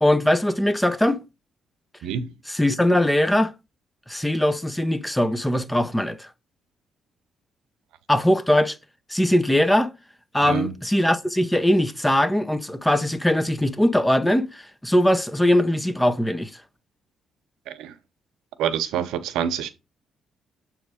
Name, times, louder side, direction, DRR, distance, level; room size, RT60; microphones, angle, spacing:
voice 1, 0.0-1.2 2.5-3.5 4.1-6.3 8.1-8.8 9.1-9.9 10.3-16.5, left 1 dB, 5° left, 0.7 m, -21 dB
voice 2, 10.4-10.7 17.7-17.9 18.6-19.7, right 9 dB, 90° right, 0.7 m, -26 dB
7.8 x 3.2 x 4.8 m
cardioid pair, 90°, 0 cm